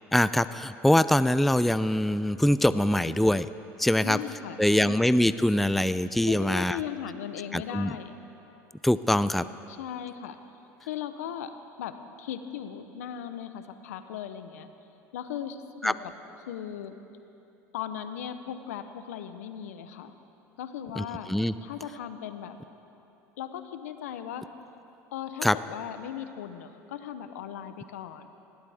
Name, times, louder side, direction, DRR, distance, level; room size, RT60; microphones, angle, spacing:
voice 1, 0.1-3.5 3.8-4.2 4.6-6.8 7.5-7.9 8.8-9.5 15.8-15.9 21.0-21.5 25.4-25.6, left 1 dB, ahead, 15 dB, 0.4 m, -23 dB
voice 2, 4.0-5.0 6.3-8.2 9.7-10.4 10.8-11.5 11.8-14.7 15.1-16.0 16.5-17.0 17.7-20.1 20.6-21.3 21.6-22.6 23.4-24.5 25.1-28.3, left 9 dB, 85° left, 10 dB, 0.9 m, -37 dB
20.0 x 17.0 x 3.6 m, 3.0 s
hypercardioid pair, 80°, 8 cm